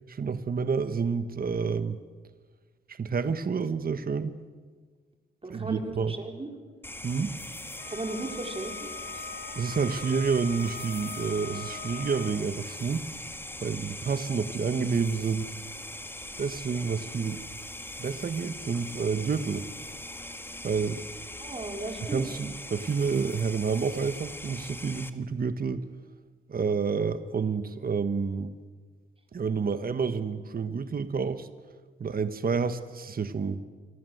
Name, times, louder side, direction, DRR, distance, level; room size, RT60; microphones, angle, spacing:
voice 1, 0.1-2.0 2.9-4.3 5.5-6.2 7.0-7.4 9.5-13.1 13.6-15.5 16.4-17.5 18.0-19.6 20.6-21.0 22.0-25.8 26.5-28.5 29.3-31.5 32.0-33.6, right 5 dB, 45° right, 11 dB, 1.3 m, -29 dB
voice 2, 5.4-6.5 7.9-8.9 21.4-22.3, right 2 dB, 25° right, 3 dB, 4.8 m, -36 dB
sound 1, 6.8-25.1, left 1 dB, 10° left, 1.9 m, -41 dB
Wind instrument woodwind instrument, 7.8-12.5, left 5 dB, 55° left, 3.1 m, -42 dB
28.0 x 24.0 x 8.0 m, 1.5 s
cardioid pair, 100°, 21 cm